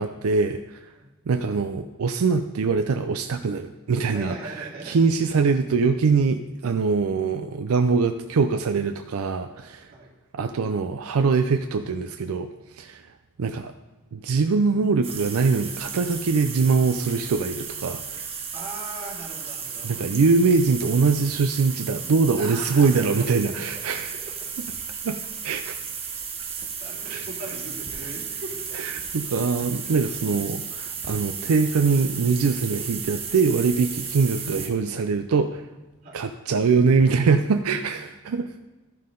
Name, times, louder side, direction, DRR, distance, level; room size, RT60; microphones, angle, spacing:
voice 1, 0.0-0.8 1.3-9.9 10.3-12.5 12.8-13.0 13.4-13.7 14.1-18.2 19.8-24.1 25.0-25.2 25.4-25.8 27.1-27.3 28.7-35.6 36.1-38.5, right 4 dB, 85° right, 7 dB, 0.4 m, -23 dB
voice 2, 0.9-1.3 4.1-5.0 9.9-10.1 18.5-20.1 22.4-23.8 24.1-24.2 26.8-28.7 30.3-30.4 34.7-34.9 36.0-36.3, right 2 dB, 45° right, -6 dB, 2.5 m, -40 dB
sound 1, 15.0-34.7, right 6 dB, 25° right, 1.0 m, -34 dB
13.5 x 5.6 x 3.8 m, 1.1 s
head